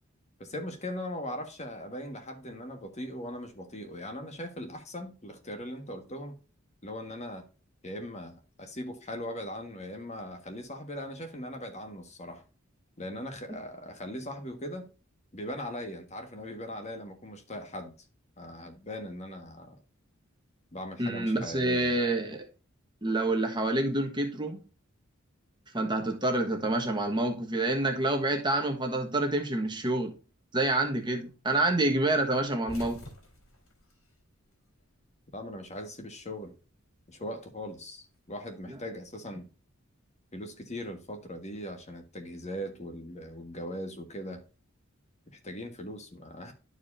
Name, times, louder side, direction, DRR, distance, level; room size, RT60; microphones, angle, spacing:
voice 1, 0.4-6.3 6.8-7.4 7.8-12.4 13.0-14.9 15.3-17.9 18.4-19.8 20.7-22.0 35.3-36.5 37.1-39.5 40.3-44.4 45.3-46.5, left 1 dB, 35° left, 1.5 m, -39 dB
voice 2, 21.0-22.5 23.0-24.6 25.7-30.2 30.5-33.0, right 2 dB, 20° right, 1.3 m, -27 dB
sound 1, 32.6-34.9 35.2-36.2 37.4-38.9, left 1 dB, 80° left, 2.9 m, -49 dB
12.0 x 4.8 x 2.6 m
head